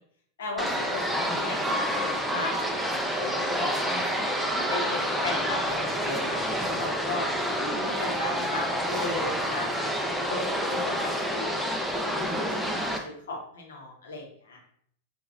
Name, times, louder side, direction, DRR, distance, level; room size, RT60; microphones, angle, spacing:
voice 1, 0.4-3.8 4.7-6.4 6.8-7.3 7.6-11.7 12.2-12.5 12.8-14.6, left 3 dB, 65° left, -1 dB, 1.2 m, -37 dB
sound 1, 0.6-13.0, equal, 5° right, 0.5 m, -28 dB
5.5 x 2.9 x 2.5 m, 0.64 s
figure-of-eight pair, 90°, 0 cm